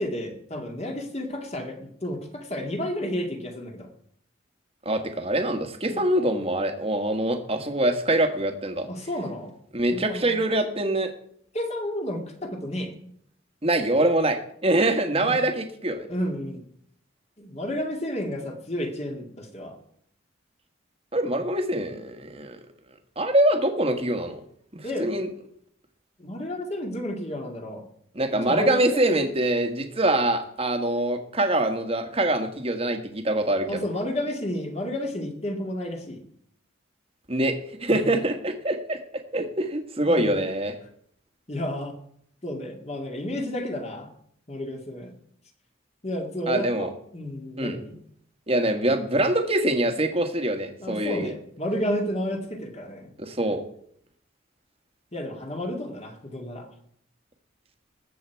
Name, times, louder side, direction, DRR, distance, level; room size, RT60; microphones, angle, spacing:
voice 1, 0.0-3.9 5.9-6.0 8.8-9.6 9.9-10.4 11.5-12.9 16.1-16.6 17.4-19.8 24.8-25.2 26.2-27.8 28.4-29.2 33.7-36.2 37.9-38.1 40.1-40.3 41.5-41.9 42.4-44.1 44.5-45.1 46.0-46.9 47.1-48.0 50.8-53.1 55.1-56.7, left 1 dB, 35° left, 3 dB, 2.1 m, -31 dB
voice 2, 4.8-8.9 9.7-11.1 13.6-16.1 21.1-22.6 23.2-24.4 24.7-25.3 28.1-33.8 37.3-39.0 39.3-40.7 46.5-46.9 47.6-47.8 48.5-51.3 53.2-53.6, right 1 dB, 30° right, 6 dB, 1.5 m, -24 dB
20.0 x 7.8 x 4.6 m, 0.66 s
head